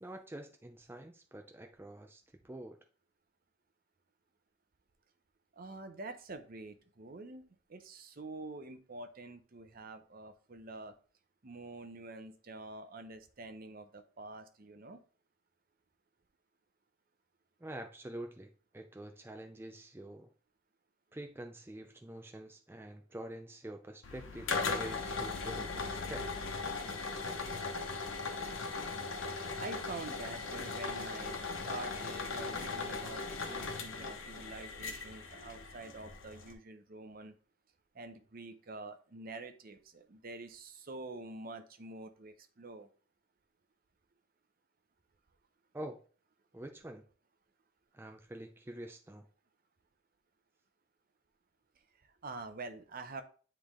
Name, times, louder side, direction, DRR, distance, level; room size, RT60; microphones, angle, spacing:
voice 1, 0.0-2.8 17.6-20.3 21.1-26.3 45.7-46.0 46.5-47.0 47.9-49.3, right 1 dB, 10° right, 4 dB, 0.4 m, -46 dB
voice 2, 5.5-7.4 7.7-10.9 11.4-15.0 29.6-37.3 37.9-42.9 52.0-53.2, right 2 dB, 50° right, 8 dB, 0.7 m, -47 dB
sound 1, 24.0-36.5, left 4 dB, 80° left, 1.0 m, -38 dB
9.4 x 3.3 x 3.6 m, 0.40 s
head